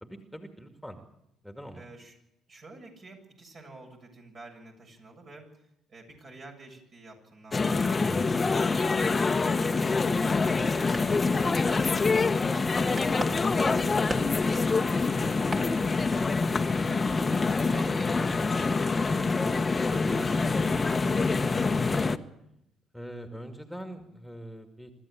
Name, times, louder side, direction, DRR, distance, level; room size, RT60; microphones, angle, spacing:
voice 1, 0.0-1.0 1.4-1.8 8.0-8.4 22.9-24.9, equal, ahead, 5 dB, 2.4 m, -42 dB
voice 2, 1.7-2.2 2.5-8.3 8.6-12.1 12.4-19.6 19.9-21.9, right 2 dB, 50° right, 1 dB, 7.6 m, -49 dB
sound 1, 7.5-22.2, left 4 dB, 30° left, 1.1 m, -26 dB
sound 2, 10.3-22.0, right 2 dB, 30° right, 3.7 m, -44 dB
25.5 x 13.5 x 8.9 m, 0.84 s
hypercardioid pair, 50°, 0 cm